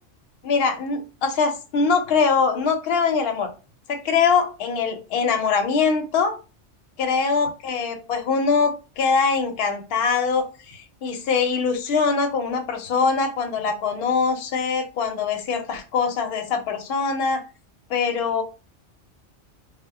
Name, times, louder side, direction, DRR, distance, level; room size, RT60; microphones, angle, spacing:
voice 1, 0.4-3.5 3.9-6.3 7.0-17.4 17.9-18.4, left 5 dB, 60° left, 5 dB, 0.7 m, -23 dB
2.1 x 2.0 x 3.4 m, 0.32 s
omnidirectional pair, 1.2 m